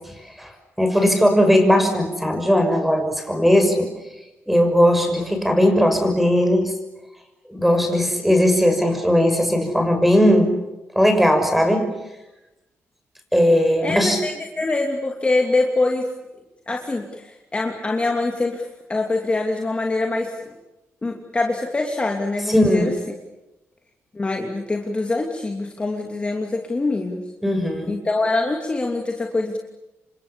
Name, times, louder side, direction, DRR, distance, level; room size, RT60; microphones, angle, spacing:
voice 1, 0.8-3.9 4.5-6.7 7.5-10.5 10.9-11.9 13.3-14.2 22.5-22.9 27.4-28.0, equal, 5° right, 6 dB, 6.2 m, -18 dB
voice 2, 13.8-16.1 16.7-20.3 21.0-22.9 24.1-27.2 27.9-29.6, left 2 dB, 25° left, 1 dB, 2.9 m, -24 dB
29.0 x 25.0 x 7.1 m, 0.97 s
cardioid pair, 105°, 5 cm